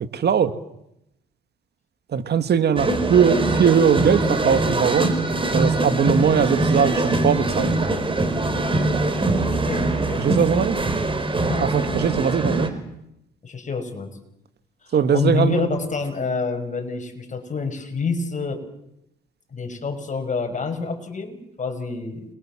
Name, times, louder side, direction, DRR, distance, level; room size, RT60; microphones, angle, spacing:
voice 1, 0.1-0.5 2.1-5.1 5.5-7.7 10.2-10.8 11.6-12.7 14.9-15.6, right 7 dB, 55° right, 11 dB, 1.9 m, -20 dB
sound 1, 2.8-12.7, right 2 dB, 25° right, 4.4 m, -22 dB
voice 2, 9.5-10.2 11.4-11.7 12.2-12.5 13.4-14.1 14.9-18.6 19.5-22.2, left 4 dB, 40° left, 7 dB, 6.2 m, -27 dB
30.0 x 23.0 x 7.5 m, 0.82 s
cardioid pair, 90°, 20 cm